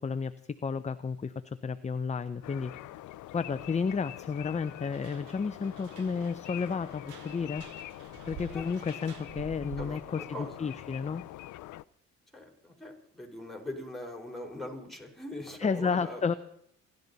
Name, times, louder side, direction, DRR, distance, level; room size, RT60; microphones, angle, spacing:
voice 1, 0.0-2.7 3.3-7.7 8.3-10.2 10.6-11.2 15.6-16.3, left 5 dB, 25° left, 11 dB, 0.7 m, -32 dB
sound 1, 2.4-11.8, left 16 dB, 75° left, 0.5 m, -45 dB
sound 2, 4.9-10.1, right 7 dB, 85° right, 1.7 m, -49 dB
voice 2, 9.8-10.8 12.3-16.4, left 1 dB, ahead, 0 dB, 4.4 m, -42 dB
27.5 x 12.0 x 4.1 m, 0.71 s
cardioid pair, 90°, 30 cm